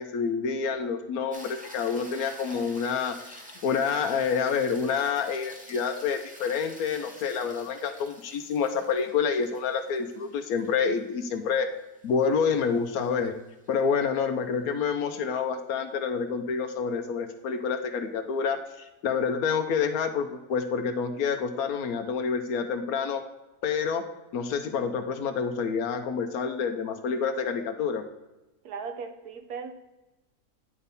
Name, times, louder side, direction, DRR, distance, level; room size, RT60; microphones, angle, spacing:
voice 1, 0.0-11.7 12.0-13.3 13.7-23.2 23.6-24.0 24.3-28.0, left 6 dB, 75° left, 8 dB, 1.0 m, -28 dB
sound 1, 1.3-13.7 18.2-18.3, equal, 10° right, 0.5 m, -49 dB
voice 2, 28.6-29.7, right 5 dB, 75° right, 6 dB, 1.3 m, -37 dB
9.7 x 3.4 x 4.1 m, 1.0 s
omnidirectional pair, 1.6 m